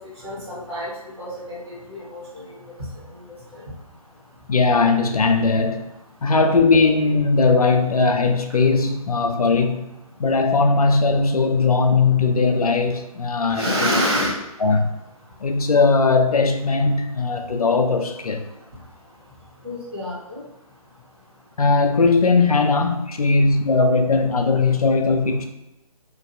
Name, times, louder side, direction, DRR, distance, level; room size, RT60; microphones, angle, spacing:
voice 1, 0.2-0.9 1.2-2.4 3.5-3.6 13.5-14.3 19.6-20.4, equal, 45° right, -7 dB, 1.1 m, -26 dB
voice 2, 4.5-5.8 6.2-9.9 10.2-13.9 14.6-14.9 15.4-18.4 21.6-25.5, left 4 dB, 70° left, 5 dB, 0.4 m, -19 dB
3.0 x 2.4 x 2.5 m, 0.94 s
figure-of-eight pair, 145°, 20 cm